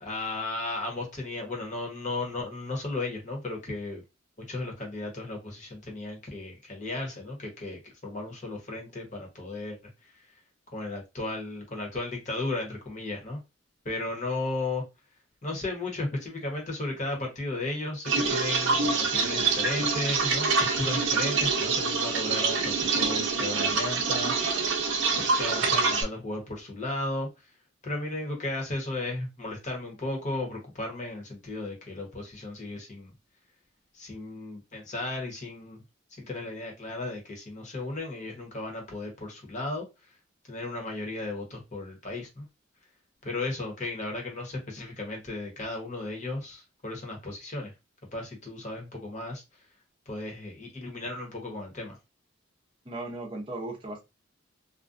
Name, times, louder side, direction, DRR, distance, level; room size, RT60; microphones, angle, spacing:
voice 1, 0.0-4.0 4.5-9.8 10.0-10.1 10.7-13.4 13.8-14.8 15.4-24.3 25.1-27.3 27.8-33.1 33.9-35.8 36.2-39.9 40.5-42.5 43.2-47.7 48.1-49.4 50.1-52.0, left 2 dB, 35° left, 1.0 m, -35 dB
sound 1, 18.0-26.0, right 4 dB, 70° right, 0.6 m, -26 dB
voice 2, 52.9-54.0, right 2 dB, 25° right, 0.6 m, -36 dB
2.5 x 2.2 x 2.5 m
head